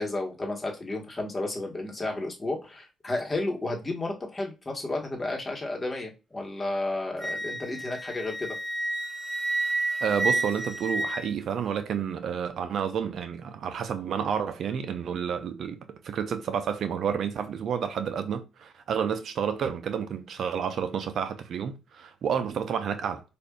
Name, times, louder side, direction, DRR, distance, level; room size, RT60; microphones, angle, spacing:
voice 1, 0.0-8.5, left 2 dB, 20° left, 1.2 m, -32 dB
Wind instrument woodwind instrument, 7.2-11.8, right 2 dB, 20° right, 1.3 m, -30 dB
voice 2, 10.0-15.8 16.0-23.2, right 7 dB, 65° right, 0.4 m, -30 dB
5.0 x 2.5 x 2.3 m
cardioid pair, 90°, 0 cm